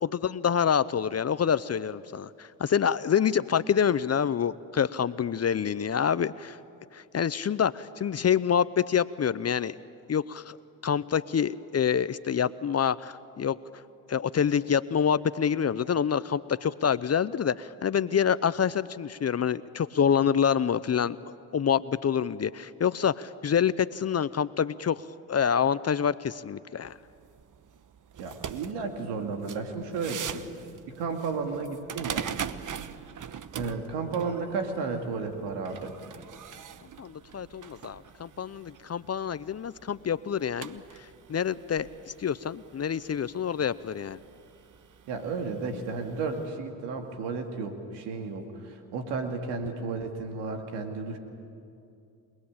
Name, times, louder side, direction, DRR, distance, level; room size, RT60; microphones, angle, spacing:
voice 1, 0.0-6.6 6.9-9.7 10.1-10.6 10.8-13.6 14.1-21.2 21.5-27.0 37.0-41.9 42.2-44.2, left 8 dB, 40° left, 16 dB, 0.8 m, -27 dB
sound 1, 26.8-46.5, right 8 dB, 50° right, 1.2 m, -43 dB
voice 2, 28.2-30.5 30.9-32.3 33.5-35.9 45.1-51.2, right 4 dB, 85° right, 4 dB, 2.3 m, -33 dB
27.5 x 19.5 x 8.8 m, 2.5 s
supercardioid pair, 60°, 41 cm